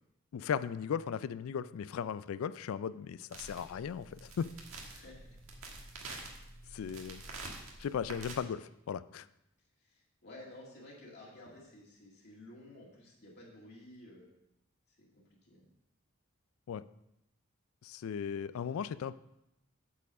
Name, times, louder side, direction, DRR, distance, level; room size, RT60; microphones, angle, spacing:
voice 1, 0.3-4.5 6.7-7.2 7.8-9.3 16.7-16.8 17.8-19.2, left 7 dB, 75° left, 15 dB, 0.3 m, -37 dB
sound 1, 3.3-8.4, right 3 dB, 75° right, 1.6 m, -47 dB
voice 2, 4.9-5.4 6.7-6.9 9.8-14.3 14.9-15.7, left 1 dB, 55° left, -4 dB, 2.1 m, -53 dB
8.3 x 4.7 x 6.2 m, 0.85 s
head